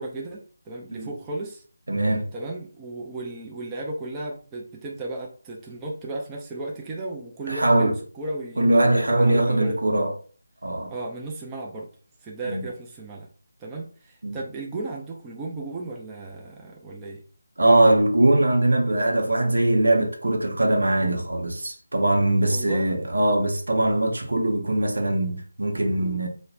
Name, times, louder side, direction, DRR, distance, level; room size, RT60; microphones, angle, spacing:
voice 1, 0.0-1.6 2.3-8.8 9.1-9.8 10.9-11.9 12.2-13.3 13.6-17.2 22.5-22.9, right 2 dB, 15° right, 0.4 m, -35 dB
voice 2, 1.9-2.3 7.5-7.9 8.6-10.2 10.6-10.9 12.4-12.7 14.2-14.4 17.6-26.3, right 1 dB, 80° right, 0.7 m, -21 dB
3.0 x 2.1 x 2.4 m
figure-of-eight pair, 165°, 0 cm